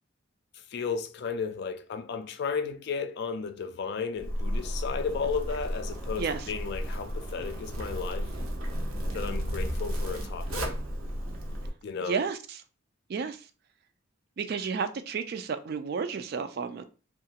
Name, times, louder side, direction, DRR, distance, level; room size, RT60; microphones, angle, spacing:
voice 1, 0.7-8.3 9.1-10.8 11.8-12.2, left 5 dB, 50° left, 0.3 m, -34 dB
Zipper (clothing), 4.2-11.7, equal, 80° right, 0.7 m, -33 dB
voice 2, 6.2-6.5 12.0-12.6 13.1-13.4 14.4-16.8, right 5 dB, 50° right, 0.3 m, -32 dB
2.9 x 2.4 x 2.8 m
head